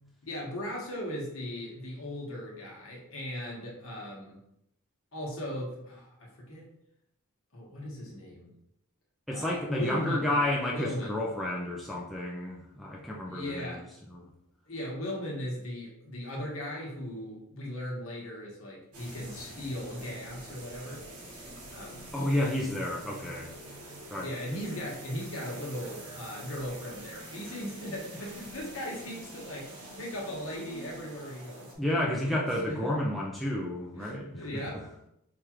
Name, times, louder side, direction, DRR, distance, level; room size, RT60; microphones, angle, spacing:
voice 1, 0.3-4.4 5.1-6.7 7.5-8.5 9.3-10.3 10.7-11.2 13.2-13.8 14.7-21.0 21.7-22.1 22.8-22.9 24.2-31.7 32.3-32.9 33.9-35.1, equal, 65° left, -2 dB, 1.1 m, -38 dB
voice 2, 9.3-13.8 14.1-14.3 22.1-23.5 24.1-24.3 31.8-34.8, left 1 dB, ahead, -4 dB, 0.3 m, -31 dB
sound 1, 18.9-31.8, right 1 dB, 80° right, 1.2 m, -46 dB
4.6 x 2.4 x 2.9 m, 0.79 s
head